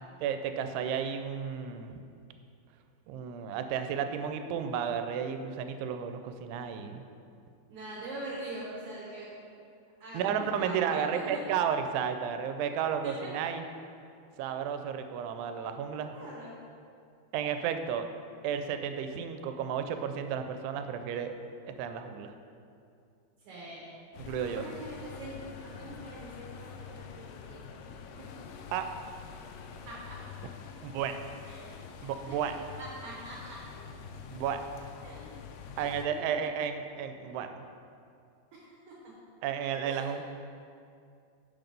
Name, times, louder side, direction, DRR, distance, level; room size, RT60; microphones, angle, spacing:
voice 1, 0.2-2.0 3.1-7.1 10.1-13.6 14.4-16.1 17.3-18.1 18.4-21.4 21.6-22.3 24.3-24.7 28.7-28.9 30.8-31.2 32.0-32.6 34.3-34.6 35.8-37.6 39.4-40.2, right 8 dB, 85° right, 7 dB, 2.6 m, -32 dB
voice 2, 7.7-9.4 10.0-11.4 13.0-13.3 16.1-16.5 23.5-23.8 24.5-27.8 28.2-28.3 29.9-30.2 31.5-31.8 32.3-32.4 32.8-33.6 35.0-35.3 38.5-39.1 39.8-40.2, right 1 dB, 65° right, -6 dB, 2.0 m, -43 dB
sound 1, 24.1-36.1, left 6 dB, 85° left, 2.6 m, -46 dB
6.6 x 5.9 x 5.2 m, 2.4 s
omnidirectional pair, 4.6 m